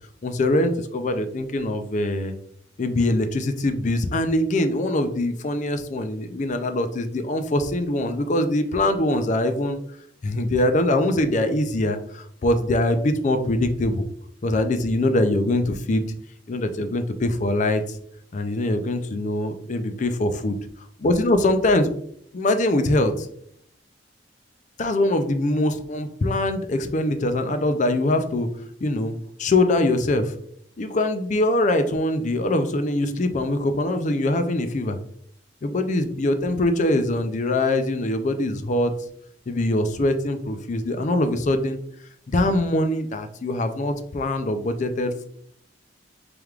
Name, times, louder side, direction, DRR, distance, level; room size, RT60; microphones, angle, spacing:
voice 1, 0.2-2.3 2.8-9.8 10.2-14.0 14.4-16.1 16.5-18.0 18.3-20.6 21.0-21.9 22.3-23.3 24.8-28.5 28.8-30.3 30.8-35.0 35.6-38.9 39.5-41.8 42.3-45.3, left 1 dB, 40° left, 8 dB, 0.4 m, -23 dB
4.6 x 3.4 x 2.3 m, 0.68 s
head